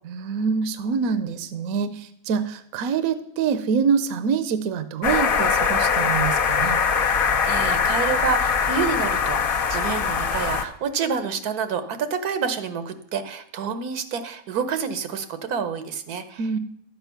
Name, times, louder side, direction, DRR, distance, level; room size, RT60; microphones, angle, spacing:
voice 1, 0.0-6.8 16.4-16.6, right 6 dB, 75° right, 12 dB, 1.1 m, -25 dB
sound 1, 5.0-10.6, left 6 dB, 45° left, 0.8 m, -22 dB
voice 2, 7.0-16.4, right 6 dB, 90° right, 10 dB, 1.4 m, -28 dB
11.5 x 8.1 x 5.7 m, 0.72 s
omnidirectional pair, 1.6 m